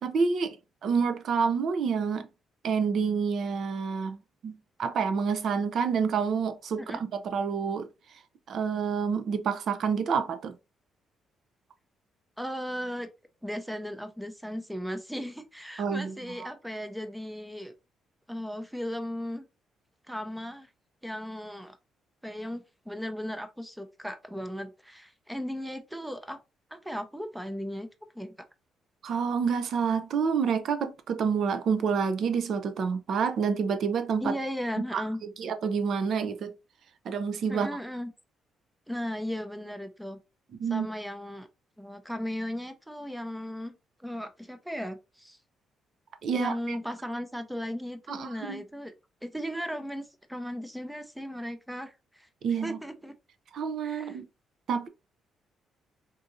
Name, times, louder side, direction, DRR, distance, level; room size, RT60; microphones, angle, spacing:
voice 1, 0.0-0.6 0.8-2.3 2.6-4.2 4.4-7.9 8.5-10.5 15.8-16.1 29.0-34.3 34.8-35.0 35.4-36.5 37.1-37.7 40.6-40.9 46.2-46.8 48.1-48.6 52.4-52.8 53.5-54.2 54.7-54.9, right 6 dB, 65° right, 0.5 m, -28 dB
voice 2, 12.4-13.1 13.4-17.7 18.3-19.5 20.1-20.7 21.0-21.8 22.2-26.4 26.7-27.9 28.1-28.3 34.2-35.2 37.5-38.1 38.9-40.2 40.7-41.5 41.8-43.7 44.0-45.4 46.3-48.9 49.2-52.3 52.6-53.1 53.8-54.2, equal, 5° right, 0.5 m, -36 dB
3.7 x 2.7 x 2.6 m
cardioid pair, 90°, 0 cm